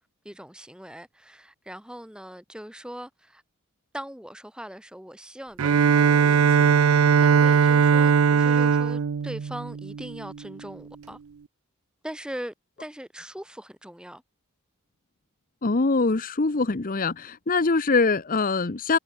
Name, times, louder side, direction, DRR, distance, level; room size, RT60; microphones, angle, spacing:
voice 1, 0.2-3.4 3.9-11.2 12.0-14.2, equal, 5° right, 2.8 m, -40 dB
Bowed string instrument, 5.6-10.4, right 6 dB, 75° right, 0.5 m, -19 dB
voice 2, 15.6-19.0, left 3 dB, 40° left, 0.8 m, -23 dB
head